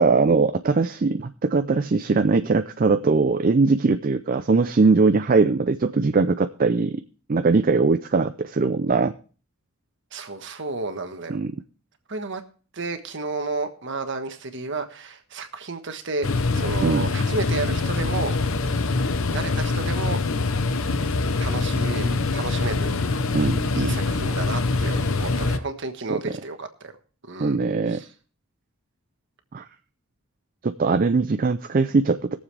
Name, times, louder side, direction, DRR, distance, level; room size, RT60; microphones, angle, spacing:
voice 1, 0.0-7.0 7.3-9.1 11.3-11.5 16.8-17.1 23.3-24.0 26.1-26.3 27.4-28.0 29.5-29.6 30.6-32.4, right 4 dB, 40° right, 9 dB, 0.4 m, -21 dB
voice 2, 10.1-11.4 12.1-12.4 12.7-18.4 18.7-18.8 19.3-20.2 21.4-22.9 23.7-26.9 27.3-27.6 27.9-28.1, right 3 dB, 55° right, 7 dB, 1.4 m, -32 dB
sound 1, 16.2-25.6, left 3 dB, 65° left, 0.9 m, -24 dB
21.5 x 7.3 x 3.3 m, 0.39 s
head